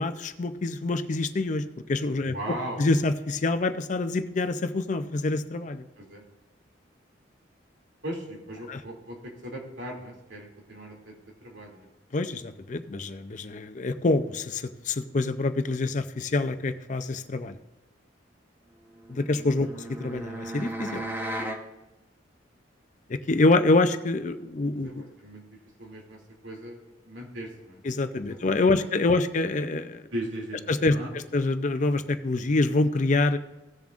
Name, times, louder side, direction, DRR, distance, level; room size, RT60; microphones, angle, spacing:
voice 1, 0.0-1.6 1.9-2.3 2.8-5.9 8.7-8.8 12.1-17.6 19.1-19.7 20.0-21.0 23.1-25.0 27.8-30.1 30.7-33.4, left 2 dB, 40° left, 10 dB, 0.5 m, -26 dB
voice 2, 2.3-2.8 6.0-6.2 8.0-11.1 11.4-11.9 24.8-25.4 25.8-26.8 27.0-27.8 28.1-28.4 28.8-28.9 29.1-29.2 30.1-30.6 30.9-31.1, right 1 dB, 75° right, -1 dB, 2.6 m, -38 dB
sound 1, 19.0-21.6, right 1 dB, 10° right, 0.9 m, -35 dB
17.0 x 7.1 x 2.5 m, 1.1 s
head